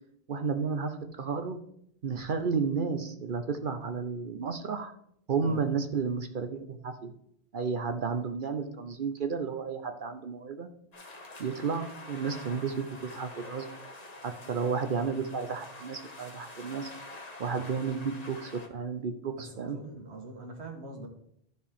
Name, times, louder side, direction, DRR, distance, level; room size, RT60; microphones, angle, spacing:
voice 1, 0.3-1.6 2.0-4.9 5.3-7.1 7.5-10.7 11.4-13.8 14.2-16.9 17.4-19.8, right 5 dB, 55° right, 7 dB, 0.8 m, -32 dB
sound 1, 10.9-18.7, left 2 dB, 40° left, 1.2 m, -46 dB
voice 2, 19.4-21.1, right 2 dB, 85° right, 3 dB, 1.7 m, -43 dB
13.0 x 4.6 x 3.5 m, 0.71 s
omnidirectional pair, 1.1 m